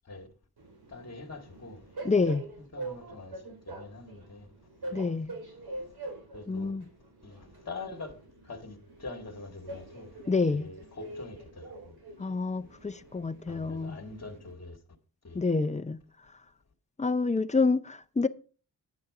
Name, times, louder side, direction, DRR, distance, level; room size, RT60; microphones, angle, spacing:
Train, 0.6-14.5, right 2 dB, 70° right, 4.7 m, -45 dB
voice 1, 0.9-1.8 2.7-4.5 6.3-6.7 7.2-8.1 8.5-8.8 9.0-10.1 10.6-11.6 13.5-14.8 15.2-15.4, left 3 dB, 40° left, 2.1 m, -43 dB
voice 2, 2.0-2.4 4.9-5.3 6.5-6.8 10.3-10.7 12.2-14.0 15.3-16.0 17.0-18.3, left 4 dB, 20° left, 0.6 m, -28 dB
10.5 x 8.4 x 4.9 m
wide cardioid pair, 105°, 40 cm